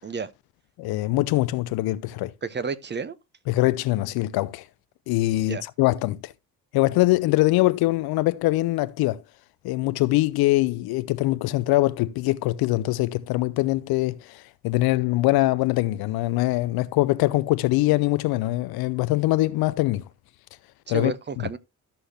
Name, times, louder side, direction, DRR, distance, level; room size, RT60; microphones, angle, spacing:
voice 1, 0.8-2.3 3.5-4.7 5.1-6.3 6.7-9.2 9.6-20.0 20.9-21.1 21.4-21.5, left 18 dB, 55° left, 0.6 m, -23 dB
voice 2, 2.4-3.2 5.3-5.6 20.9-21.6, right 5 dB, 25° right, 0.8 m, -31 dB
13.0 x 6.3 x 2.8 m
figure-of-eight pair, 45°, 46 cm